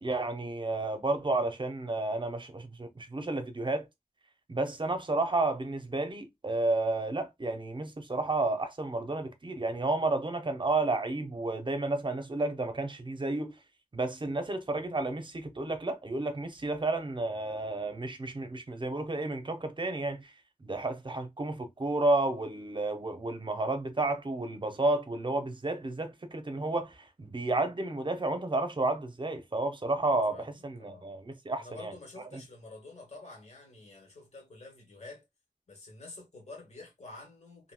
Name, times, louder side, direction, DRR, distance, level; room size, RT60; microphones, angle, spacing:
voice 1, 0.0-3.9 4.5-13.5 13.9-20.3 20.6-31.9 32.3-32.4, right 2 dB, 35° right, 0.6 m, -31 dB
voice 2, 29.9-31.1 31.6-35.2 35.7-37.7, left 2 dB, 55° left, 1.3 m, -49 dB
2.8 x 2.6 x 2.2 m
wide cardioid pair, 70°, 13 cm